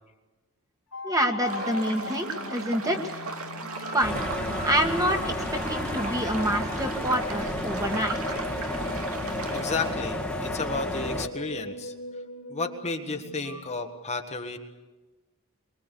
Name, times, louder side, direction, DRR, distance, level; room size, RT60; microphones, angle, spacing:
sound 1, 0.9-13.7, left 2 dB, 75° left, 2.5 m, -40 dB
voice 1, 1.0-3.2 3.9-4.2 4.6-5.3 5.7-8.4, equal, 15° right, 3 dB, 2.1 m, -27 dB
sound 2, 1.4-9.9, right 3 dB, 80° right, 2.6 m, -37 dB
sound 3, 4.0-11.3, left 1 dB, 5° left, 1.9 m, -32 dB
voice 2, 9.5-11.9 12.5-14.6, left 3 dB, 30° left, 4 dB, 1.6 m, -32 dB
24.5 x 21.5 x 8.4 m, 1.2 s
head